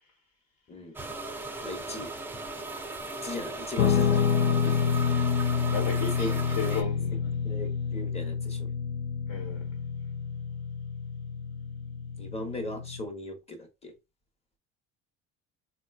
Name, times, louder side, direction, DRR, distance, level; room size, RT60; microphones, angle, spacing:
sound 1, 1.0-6.8, right 2 dB, 5° right, 0.4 m, -37 dB
voice 1, 1.6-2.1 3.2-4.5 6.2-6.8 7.4-8.7 12.2-13.9, left 1 dB, 20° left, 0.8 m, -38 dB
Guitar, 3.8-13.1, left 6 dB, 85° left, 0.5 m, -28 dB
voice 2, 4.6-5.0 5.5-7.3 9.3-9.6, left 5 dB, 65° left, 1.2 m, -36 dB
3.8 x 2.3 x 2.3 m
cardioid pair, 115°, 29 cm